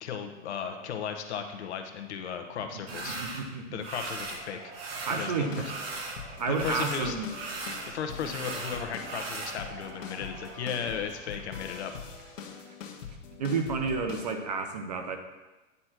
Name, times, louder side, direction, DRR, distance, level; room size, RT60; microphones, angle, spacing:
voice 1, 0.0-3.4 3.7-4.6 5.2-5.7 6.5-7.1 7.9-11.9, left 7 dB, 60° left, 5 dB, 1.1 m, -35 dB
sound 1, 2.9-3.4 3.8-4.4 4.7-6.2 6.5-9.6, right 3 dB, 50° right, 1.5 m, -38 dB
voice 2, 3.0-3.8 5.1-5.7 6.4-7.3 8.2-8.3 13.4-15.2, right 4 dB, 35° right, 6 dB, 0.5 m, -31 dB
Cheering / Applause / Crowd, 3.9-12.8, right 4 dB, 90° right, 1.6 m, -49 dB
sound 2, 5.3-14.3, left 6 dB, 75° left, 1.5 m, -44 dB
9.8 x 4.2 x 6.0 m, 1.1 s
supercardioid pair, 175°, 39 cm